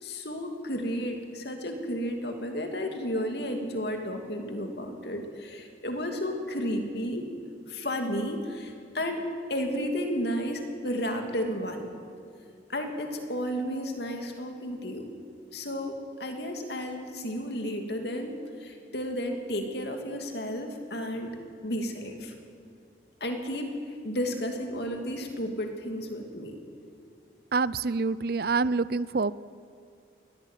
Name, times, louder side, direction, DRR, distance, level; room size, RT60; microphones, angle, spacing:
voice 1, 0.0-7.2 7.7-9.2 9.5-11.9 12.7-15.1 15.5-18.3 18.6-21.4 21.6-22.3 23.2-23.7 24.0-26.6, equal, 60° left, 4 dB, 2.8 m, -32 dB
voice 2, 27.5-29.3, right 4 dB, 55° right, 19 dB, 0.5 m, -26 dB
22.0 x 17.0 x 9.3 m, 2.4 s
head